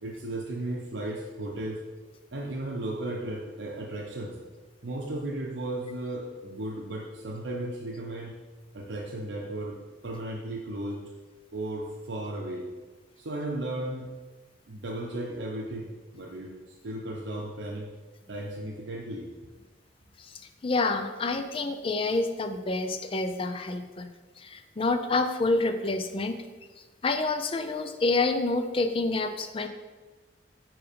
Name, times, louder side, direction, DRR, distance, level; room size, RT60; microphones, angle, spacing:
voice 1, 0.0-1.8 2.3-4.4 4.8-8.3 8.7-11.1 11.5-12.7 13.2-14.1 14.7-16.6 16.8-17.9 18.3-19.3, right 1 dB, 80° right, -1 dB, 0.8 m, -35 dB
voice 2, 20.2-24.1 24.4-26.4 27.0-29.7, left 3 dB, 30° left, 8 dB, 0.4 m, -28 dB
5.3 x 4.6 x 5.2 m, 1.3 s
head